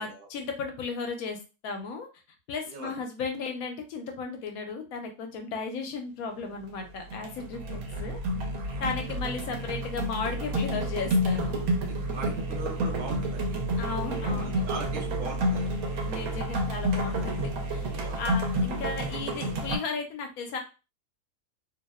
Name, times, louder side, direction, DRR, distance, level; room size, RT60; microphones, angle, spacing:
voice 1, 0.0-2.1 2.5-8.2 8.8-11.6 13.8-14.6 16.0-17.9 18.1-20.6, left 4 dB, 85° left, 4 dB, 1.1 m, -35 dB
sound 1, 6.5-6.8 7.1-19.8, right 1 dB, 80° right, 1.1 m, -30 dB
voice 2, 12.1-13.6 14.2-15.7 18.0-18.2, right 3 dB, 50° right, 0 dB, 0.6 m, -39 dB
2.7 x 2.0 x 2.2 m, 0.31 s
omnidirectional pair, 1.5 m